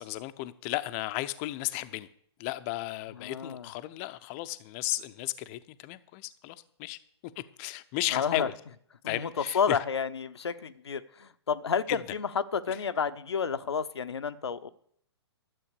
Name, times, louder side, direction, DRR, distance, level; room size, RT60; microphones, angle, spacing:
voice 1, 0.0-2.1 2.4-7.0 7.4-8.5 9.1-9.8 12.7-12.8, left 17 dB, 30° left, 13 dB, 0.7 m, -34 dB
voice 2, 3.2-3.7 8.1-8.5 9.0-14.7, left 6 dB, 70° left, 11 dB, 0.7 m, -31 dB
12.5 x 7.8 x 6.7 m, 0.66 s
figure-of-eight pair, 120°, 14 cm